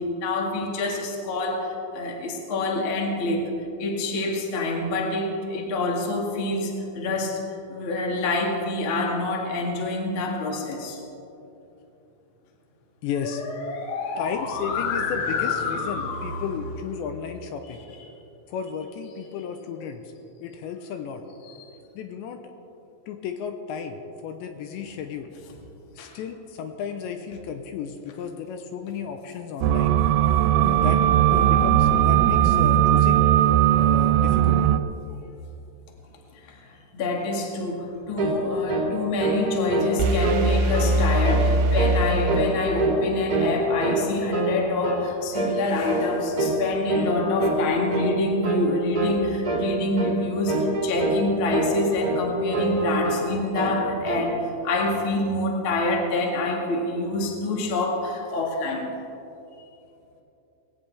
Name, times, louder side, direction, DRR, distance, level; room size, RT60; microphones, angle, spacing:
voice 1, 0.0-3.5 3.8-7.4 7.7-11.0 13.2-16.4 17.7-17.8 21.4-21.5 26.0-26.1 36.4-36.6 36.9-54.3 54.6-58.9, left 2 dB, 50° left, 0 dB, 1.5 m, -27 dB
voice 2, 13.0-13.4 14.2-17.8 18.5-20.0 20.4-21.2 22.0-22.4 23.1-25.3 26.0-30.0 30.7-31.0 31.3-33.3 33.8-34.6, left 7 dB, 85° left, 6 dB, 2.8 m, -33 dB
sound 1, 29.6-34.8, right 11 dB, 90° right, 3.1 m, -18 dB
sound 2, 38.2-38.4 38.7-38.9 39.2-40.4 40.7-41.0 41.2-41.5 41.7-42.0 42.3-43.0 43.3-44.1 44.3-44.5 44.8-45.0 45.3-45.6 45.9-46.1 46.4-46.6 46.9-47.1 47.4-47.6 47.9-48.1 48.4-48.6 48.9-49.2 49.4-49.7 49.9-50.2 50.5-51.2 51.5-52.2 52.5-53.3 53.5-54.3, right 2 dB, 30° right, 1.8 m, -25 dB
sound 3, 40.0-42.9, right 1 dB, 75° right, 2.7 m, -22 dB
19.5 x 17.5 x 3.5 m, 2.8 s
omnidirectional pair, 5.5 m